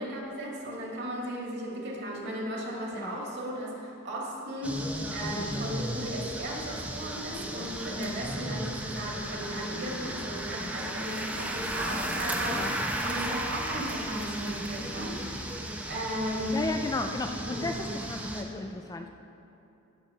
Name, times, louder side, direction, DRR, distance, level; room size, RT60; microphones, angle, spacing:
voice 1, 0.0-15.5 15.9-16.6 17.4-17.7, equal, 55° right, -2 dB, 2.1 m, -36 dB
sound 1, 4.6-18.4, right 1 dB, 5° right, 0.8 m, -35 dB
voice 2, 5.3-5.7 7.9-8.3 12.5-12.8 16.5-19.1, left 2 dB, 15° left, 5 dB, 0.3 m, -35 dB
16.0 x 6.8 x 4.3 m, 2.8 s
head